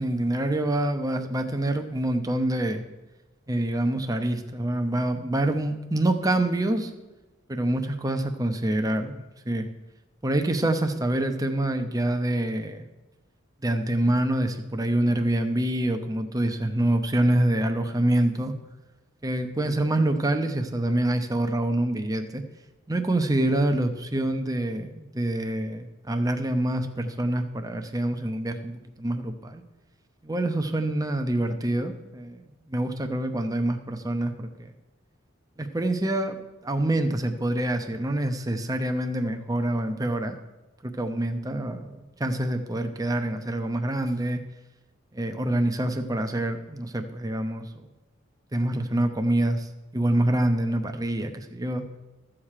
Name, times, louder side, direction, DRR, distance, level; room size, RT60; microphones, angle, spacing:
voice 1, 0.0-2.8 3.5-6.9 7.5-9.7 10.2-12.8 13.6-18.5 19.2-22.4 22.9-29.6 30.2-34.7 35.6-40.4 40.8-44.4 45.1-47.9 48.5-49.7 49.9-51.9, right 1 dB, 20° right, 6 dB, 0.8 m, -26 dB
14.0 x 7.4 x 4.9 m, 1.1 s
head